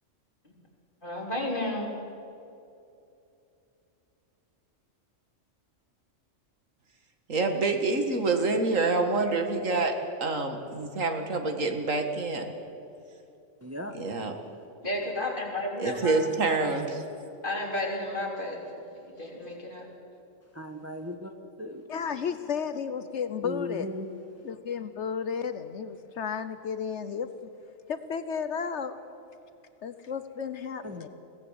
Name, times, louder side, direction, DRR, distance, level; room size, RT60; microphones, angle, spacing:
voice 1, 1.0-1.9 14.8-16.2 17.4-18.6 19.0-19.9, left 1 dB, 40° left, -2 dB, 3.9 m, -32 dB
voice 2, 7.3-12.5 14.0-14.3 15.8-17.0, right 3 dB, 85° right, 5 dB, 2.2 m, -27 dB
voice 3, 13.6-14.0 20.5-21.3 21.6-21.8 23.4-24.1 30.8-31.1, left 1 dB, 10° right, 5 dB, 1.2 m, -37 dB
voice 4, 21.9-23.9 24.4-27.3 27.9-29.0 29.8-31.1, left 7 dB, 65° left, 11 dB, 1.1 m, -33 dB
22.5 x 17.0 x 8.2 m, 2.7 s
omnidirectional pair, 1.3 m